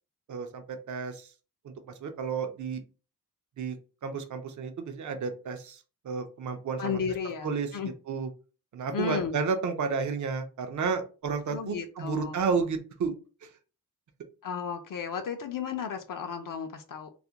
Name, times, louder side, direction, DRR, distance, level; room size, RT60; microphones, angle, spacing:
voice 1, 0.3-1.3 1.6-1.7 2.0-2.8 3.6-3.8 4.0-5.8 6.0-7.0 7.4-7.7 8.1-8.3 8.7-13.1, right 5 dB, 55° right, 6 dB, 0.5 m, -31 dB
voice 2, 6.8-7.9 8.9-9.3 11.5-12.4 14.4-17.1, left 6 dB, 65° left, 6 dB, 0.5 m, -33 dB
2.4 x 2.1 x 2.7 m, 0.34 s
wide cardioid pair, 145°, 36 cm